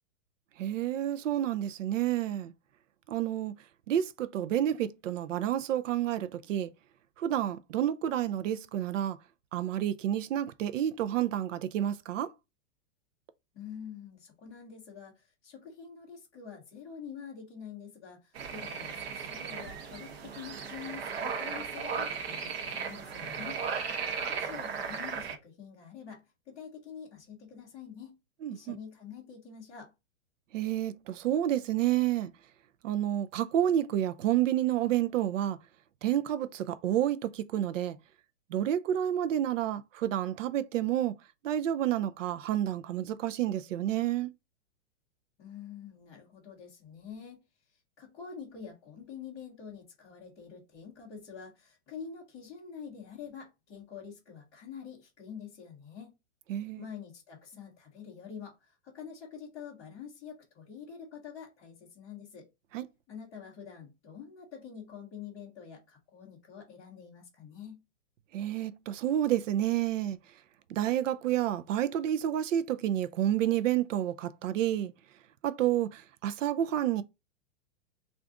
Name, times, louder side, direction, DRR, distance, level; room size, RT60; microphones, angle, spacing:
voice 1, 0.6-2.5 3.1-3.5 3.9-6.7 7.2-9.2 9.5-12.3 28.4-28.8 30.5-32.3 32.8-35.6 36.0-38.0 38.5-41.1 41.4-44.3 56.5-56.8 62.7-62.9 68.3-70.2 70.7-74.9 75.4-77.0, right 11 dB, 90° right, 0.5 m, -29 dB
voice 2, 13.5-23.6 24.3-28.1 28.5-29.9 45.4-47.4 48.0-56.1 56.8-62.5 63.1-67.8, left 7 dB, 10° left, 0.5 m, -46 dB
sound 1, 18.4-25.4, right 6 dB, 55° right, 1.0 m, -36 dB
3.4 x 2.5 x 3.6 m
supercardioid pair, 170°, 37 cm